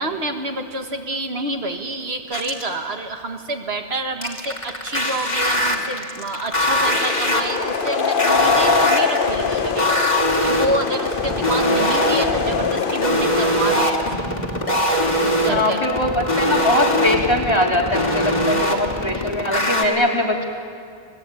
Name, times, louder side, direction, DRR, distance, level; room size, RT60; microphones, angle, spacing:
voice 1, 0.0-9.9 10.4-14.1 15.2-15.8, right 2 dB, 70° right, 5 dB, 1.9 m, -28 dB
sound 1, 2.3-2.7 4.2-19.8, equal, 40° left, 2.8 m, -21 dB
sound 2, 6.8-13.9, left 6 dB, 55° left, 1.1 m, -23 dB
voice 2, 15.4-20.4, left 1 dB, 25° left, -1 dB, 3.2 m, -21 dB
29.0 x 19.0 x 9.1 m, 2.3 s
omnidirectional pair, 1.1 m